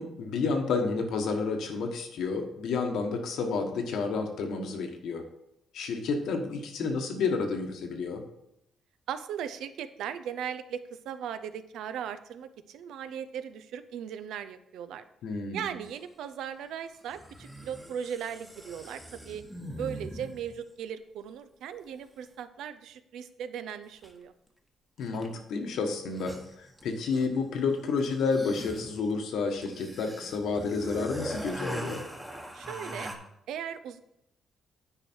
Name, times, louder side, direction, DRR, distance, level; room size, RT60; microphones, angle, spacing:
voice 1, 0.0-5.2 5.7-8.2 15.2-15.6 25.0-32.0, left 4 dB, 75° left, 4 dB, 1.3 m, -30 dB
voice 2, 9.1-15.0 15.5-19.4 19.8-24.3 32.5-33.1 33.5-34.0, right 8 dB, 80° right, 12 dB, 0.6 m, -38 dB
sound 1, 15.8-15.9 17.1-20.6 24.0-24.1 25.0-25.4 25.7-25.8 26.0-27.4 28.0-33.2, right 1 dB, ahead, 1.0 m, -41 dB
9.8 x 4.9 x 4.5 m, 0.81 s
cardioid pair, 130°, 0 cm